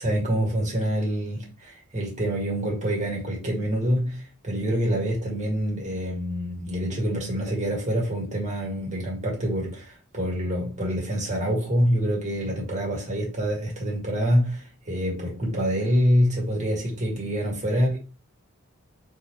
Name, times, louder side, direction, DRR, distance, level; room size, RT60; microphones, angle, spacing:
voice 1, 0.0-18.0, equal, 35° right, 1.8 m, -26 dB
4.5 x 3.5 x 3.0 m
head